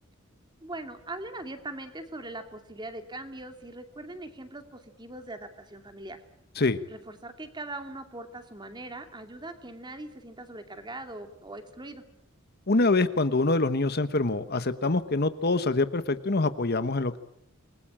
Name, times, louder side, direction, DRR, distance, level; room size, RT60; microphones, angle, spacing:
voice 1, 0.6-6.2 6.9-12.0, right 2 dB, 20° right, 7 dB, 2.6 m, -41 dB
voice 2, 12.7-17.2, left 2 dB, 50° left, 12 dB, 1.2 m, -25 dB
27.0 x 21.0 x 8.8 m, 0.73 s
head